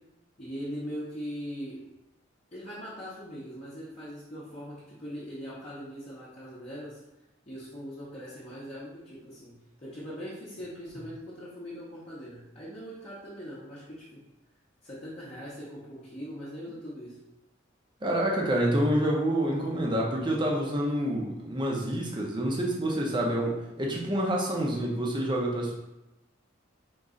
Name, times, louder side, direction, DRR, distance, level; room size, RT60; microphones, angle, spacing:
voice 1, 0.4-1.8 2.5-7.0 7.5-9.5 9.8-14.2 14.8-17.2, equal, 30° left, -10 dB, 0.8 m, -41 dB
voice 2, 18.0-25.7, right 1 dB, 25° right, -1 dB, 0.7 m, -27 dB
3.9 x 3.0 x 3.7 m, 0.93 s
head